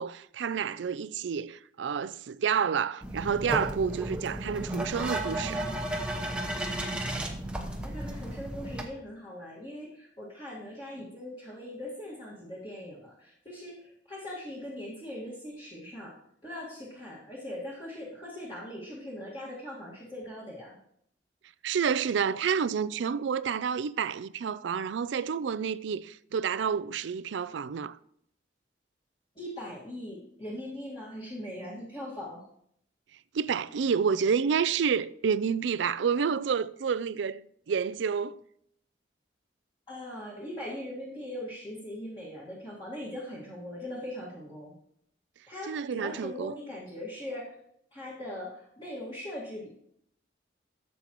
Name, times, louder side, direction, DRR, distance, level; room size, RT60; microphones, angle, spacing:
voice 1, 0.0-5.6 21.6-28.0 33.3-38.4 45.7-46.6, right 6 dB, 80° right, 0.4 m, -29 dB
sound 1, 3.0-8.8, right 1 dB, 5° right, 0.9 m, -34 dB
voice 2, 7.6-16.2 16.4-20.8 29.4-32.4 39.9-44.7 45.5-47.6 47.9-49.7, left 1 dB, 25° left, 1.8 m, -40 dB
13.5 x 7.4 x 3.0 m
head